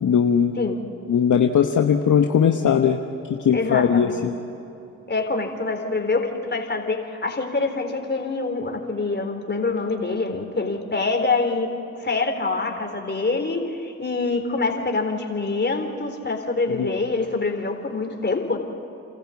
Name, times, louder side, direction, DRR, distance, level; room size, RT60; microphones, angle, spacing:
voice 1, 0.0-0.5 1.1-3.0 3.4-4.1 16.8-16.9, left 7 dB, 55° left, 4 dB, 1.2 m, -19 dB
voice 2, 3.5-4.3 5.1-18.6, left 3 dB, 30° left, 4 dB, 3.8 m, -25 dB
29.5 x 14.0 x 8.4 m, 2.8 s
supercardioid pair, 55°, 35 cm